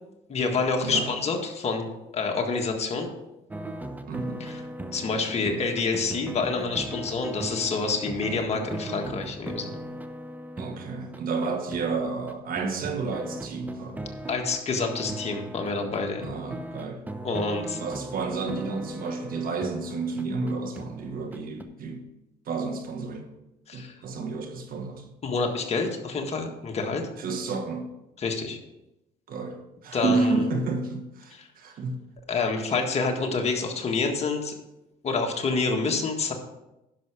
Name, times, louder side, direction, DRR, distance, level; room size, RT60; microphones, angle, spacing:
voice 1, 0.3-1.9 2.1-3.1 4.4-4.6 4.9-9.8 14.3-16.3 17.2-17.8 23.7-23.9 25.2-27.0 28.2-28.6 29.9-30.4 31.4-31.5 32.3-34.5 35.0-36.3, left 4 dB, 40° left, 3 dB, 1.7 m, -27 dB
sound 1, 3.5-21.6, right 1 dB, 10° right, 0.8 m, -38 dB
voice 2, 4.1-4.5 10.6-14.0 16.2-17.0 17.7-22.0 22.5-23.3 23.7-25.0 27.2-27.9 29.3-32.1, right 3 dB, 60° right, 5 dB, 1.6 m, -31 dB
10.5 x 6.4 x 4.9 m, 0.92 s
cardioid pair, 110°, 17 cm